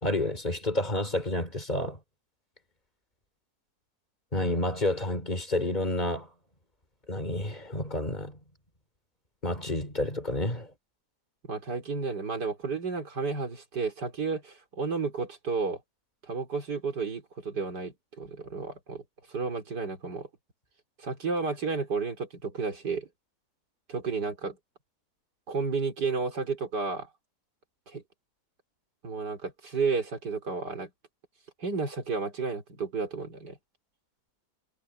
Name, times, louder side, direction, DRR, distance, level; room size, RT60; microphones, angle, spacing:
voice 1, 0.0-2.0 4.3-6.3 7.1-8.4 9.4-10.7, left 1 dB, 25° left, 3.9 m, -29 dB
voice 2, 11.5-15.8 16.3-19.0 19.3-20.3 21.0-23.1 23.9-24.6 25.5-27.1 27.9-28.0 29.0-30.9 31.6-33.6, right 4 dB, 75° right, 4.6 m, -32 dB
omnidirectional pair, 1.8 m